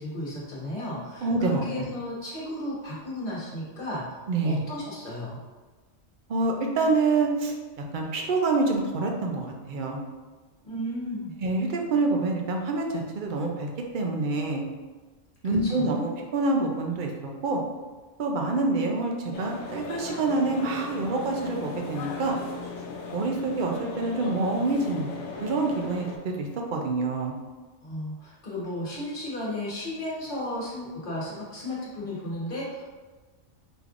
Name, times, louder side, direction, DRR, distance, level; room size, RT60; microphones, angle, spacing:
voice 1, 0.0-4.0 4.4-5.4 10.6-11.3 15.4-15.9 27.8-32.8, left 1 dB, 45° left, -6 dB, 1.3 m, -34 dB
voice 2, 1.2-1.9 4.3-4.6 6.3-10.0 11.4-13.7 13.9-14.6 15.4-17.1 17.4-17.6 18.2-22.4 23.1-25.1 25.4-27.3, right 3 dB, 55° right, 1 dB, 0.6 m, -26 dB
sound 1, 19.3-26.2, left 4 dB, 70° left, 0.8 m, -38 dB
5.0 x 3.3 x 2.5 m, 1.3 s
omnidirectional pair, 1.3 m